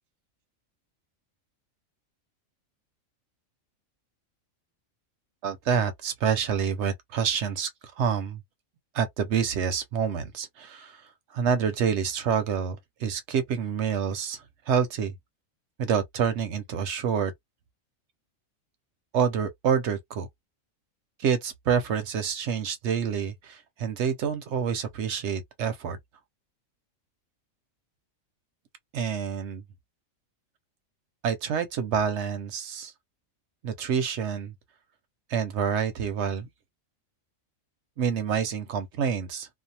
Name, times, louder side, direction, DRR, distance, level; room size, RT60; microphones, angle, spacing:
voice 1, 5.4-7.7 8.0-8.4 8.9-11.0 11.3-15.1 15.8-17.3 19.1-20.3 21.2-26.0 28.9-29.6 31.2-32.9 33.6-34.5 35.3-36.5 38.0-39.5, right 7 dB, 65° right, 0.8 m, -27 dB
2.6 x 2.1 x 2.7 m
omnidirectional pair, 1.4 m